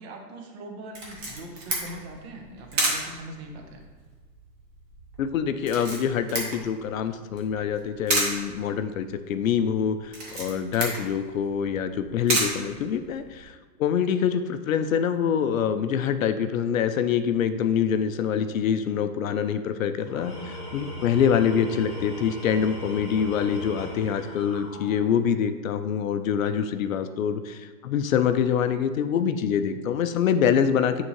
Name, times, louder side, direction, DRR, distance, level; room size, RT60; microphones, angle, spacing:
voice 1, 0.0-3.8 18.5-18.6, right 1 dB, 40° right, 2 dB, 0.9 m, -41 dB
Camera, 0.9-13.4, right 1 dB, 20° right, 0.9 m, -33 dB
voice 2, 5.2-31.0, left 8 dB, 55° left, 10 dB, 0.5 m, -25 dB
Tools, 20.0-25.4, left 1 dB, 15° left, 1.8 m, -38 dB
9.0 x 3.7 x 3.1 m, 1.5 s
hypercardioid pair, 145°, 49 cm